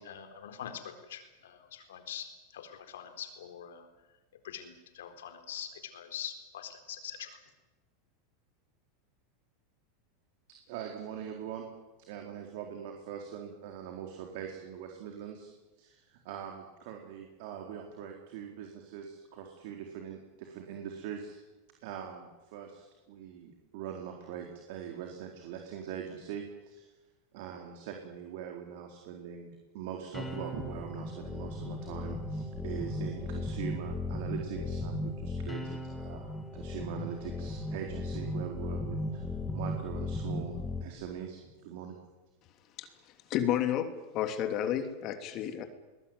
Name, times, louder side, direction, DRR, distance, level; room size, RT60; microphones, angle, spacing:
voice 1, 0.0-3.9 4.4-7.4, left 9 dB, 85° left, 7 dB, 4.3 m, -44 dB
voice 2, 10.5-11.7 12.1-15.5 15.8-21.4 21.8-26.9 27.3-42.0, right 8 dB, 65° right, 2 dB, 4.2 m, -42 dB
sound 1, 30.1-40.8, left 1 dB, 10° left, 3.2 m, -36 dB
voice 3, 43.3-45.7, left 10 dB, 45° left, 7 dB, 2.9 m, -31 dB
22.5 x 20.0 x 9.6 m, 1.1 s
hypercardioid pair, 115°, 0 cm